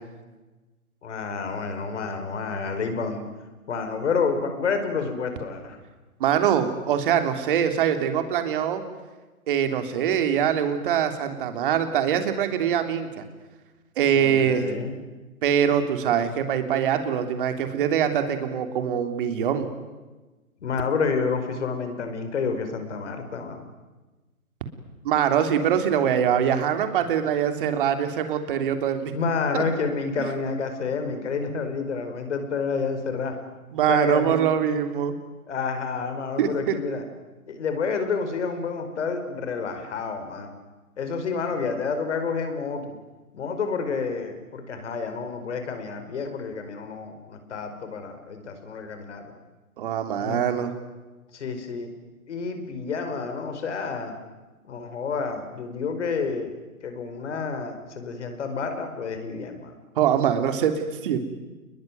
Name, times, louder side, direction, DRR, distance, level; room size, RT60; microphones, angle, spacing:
voice 1, 1.0-3.2 3.7-5.8 14.1-14.9 20.6-23.7 29.1-33.3 33.9-34.4 35.5-37.0 37.5-40.6 41.0-43.0 43.3-49.3 50.2-50.4 51.3-51.9 52.3-54.2 54.6-59.7, left 5 dB, 50° left, 7 dB, 5.4 m, -29 dB
voice 2, 6.2-8.8 9.5-13.2 14.0-14.7 15.4-19.7 25.0-29.1 29.5-29.6 33.7-35.1 36.4-36.7 49.8-50.7 59.9-60.7 61.0-61.3, right 9 dB, 35° right, 7 dB, 3.3 m, -23 dB
28.5 x 22.0 x 9.5 m, 1.2 s
hypercardioid pair, 150°, 43 cm